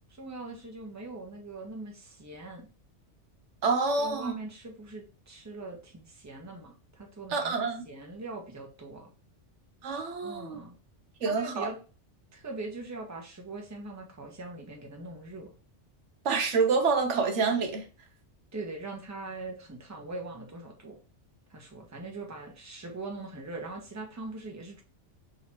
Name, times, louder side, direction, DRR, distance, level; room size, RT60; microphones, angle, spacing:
voice 1, 0.1-2.7 4.0-7.6 7.8-9.1 10.2-10.7 11.2-11.8 12.3-15.5 18.5-21.0 21.5-24.8, right 2 dB, 15° right, 0.9 m, -41 dB
voice 2, 3.6-4.4 7.3-7.8 9.8-10.6 11.2-11.7 16.2-17.9, right 4 dB, 75° right, 1.1 m, -27 dB
3.9 x 2.9 x 4.3 m
omnidirectional pair, 1.2 m